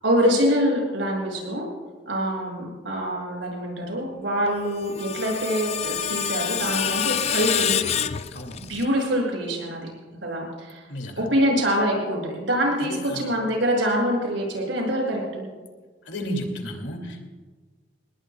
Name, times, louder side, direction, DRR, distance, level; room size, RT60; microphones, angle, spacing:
voice 1, 0.0-1.7 2.0-7.8 8.7-9.9 10.2-10.8 11.2-15.5, equal, 80° right, -1 dB, 6.8 m, -25 dB
Screech, 4.6-8.9, left 9 dB, 35° left, 0.4 m, -27 dB
voice 2, 10.9-11.2 12.8-13.3 16.1-17.3, equal, 70° left, 3 dB, 2.5 m, -33 dB
29.0 x 19.5 x 2.4 m, 1.4 s
head